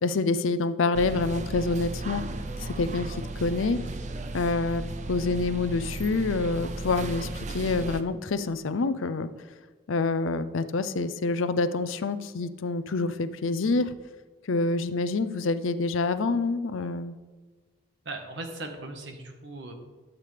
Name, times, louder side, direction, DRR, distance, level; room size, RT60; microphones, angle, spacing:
voice 1, 0.0-2.3 2.6-3.8 4.3-4.8 5.1-9.3 9.9-13.9 14.5-17.2, left 3 dB, 75° left, 12 dB, 0.5 m, -27 dB
sound 1, 0.9-8.0, right 2 dB, 35° right, 0.5 m, -35 dB
voice 2, 18.0-19.7, right 2 dB, 60° right, 4 dB, 1.4 m, -38 dB
12.5 x 8.2 x 3.4 m, 1.3 s
head